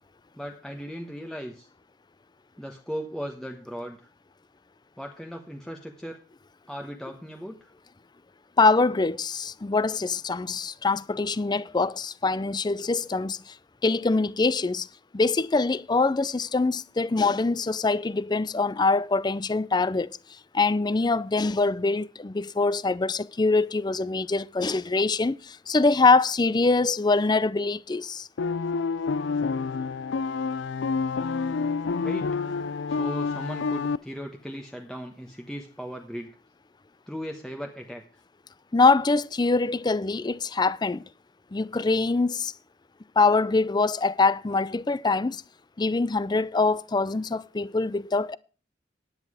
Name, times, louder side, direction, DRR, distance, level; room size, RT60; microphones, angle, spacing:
voice 1, 0.4-1.7 2.6-4.1 5.0-6.2 6.7-7.7 32.0-32.3 32.9-36.3 37.1-38.0, equal, 5° left, 1.1 m, -37 dB
voice 2, 8.6-13.5 13.8-14.9 15.1-20.2 20.5-28.3 38.7-41.0 41.5-42.5 43.2-45.4 45.8-48.4, left 3 dB, 25° left, 0.5 m, -24 dB
sound 1, 28.4-34.0, left 4 dB, 80° left, 0.4 m, -28 dB
10.5 x 9.5 x 4.9 m
head